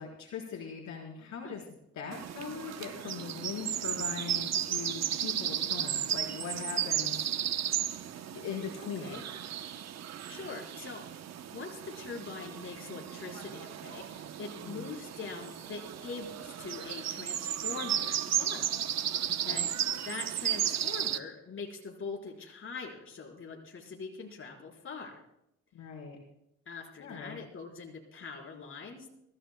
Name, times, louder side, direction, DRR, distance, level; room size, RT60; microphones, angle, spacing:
voice 1, 0.0-1.6 1.9-7.3 8.3-9.1 14.6-14.9 19.4-19.7 25.7-26.2 27.0-27.4, left 6 dB, 70° left, -1 dB, 4.5 m, -40 dB
sound 1, 2.1-21.2, right 10 dB, 60° right, 1.0 m, -34 dB
voice 2, 8.8-9.2 10.3-11.0 11.5-18.7 19.1-19.7 20.0-25.2 26.7-29.1, left 4 dB, 45° left, 0 dB, 4.8 m, -43 dB
24.0 x 15.5 x 2.3 m, 0.80 s
cardioid pair, 90°, 30 cm